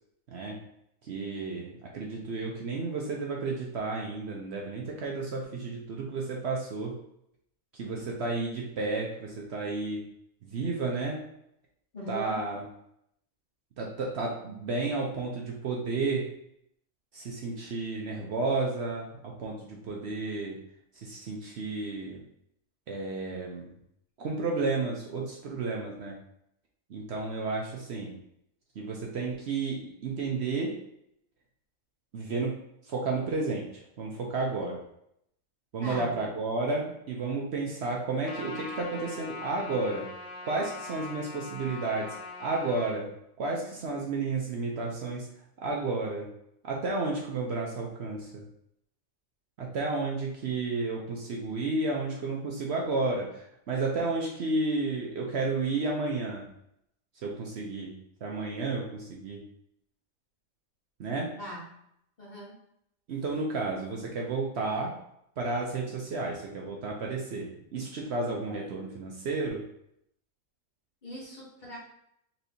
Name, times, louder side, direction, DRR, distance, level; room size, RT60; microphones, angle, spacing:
voice 1, 0.3-0.6 1.0-7.0 7.7-10.0 10.4-11.3 12.1-12.6 13.8-16.3 17.1-20.6 20.9-22.2 22.9-23.7 24.2-26.2 26.9-28.1 28.7-30.8 32.1-32.6 32.8-34.8 35.7-40.1 40.4-43.1 43.4-45.3 45.6-46.3 46.6-48.4 49.6-56.5 57.2-57.9 58.2-59.4 61.0-61.4 63.1-65.0 65.4-69.7, right 3 dB, 60° right, -1 dB, 0.8 m, -32 dB
voice 2, 11.9-12.4 35.8-36.2 61.4-61.7 62.2-62.6 68.5-68.6 71.0-71.8, equal, 35° left, -5 dB, 1.2 m, -40 dB
Trumpet, 38.2-42.9, left 4 dB, 70° left, 1.3 m, -42 dB
4.2 x 3.2 x 2.7 m, 0.75 s
omnidirectional pair, 1.4 m